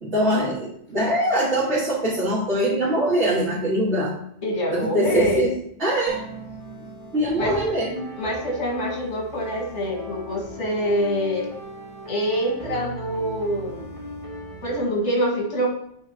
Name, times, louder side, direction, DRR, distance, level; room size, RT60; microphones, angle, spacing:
voice 1, 0.0-4.1 4.7-5.5 5.8-6.2 7.1-8.1, right 1 dB, 75° right, -9 dB, 2.1 m, -22 dB
voice 2, 4.4-5.5 7.4-7.5 8.2-11.5 12.1-13.9 14.6-15.7, equal, 75° left, -1 dB, 2.1 m, -25 dB
sound 1, 6.1-14.8, right 1 dB, 30° right, 1.3 m, -38 dB
8.7 x 3.5 x 4.3 m, 0.73 s
omnidirectional pair, 1.2 m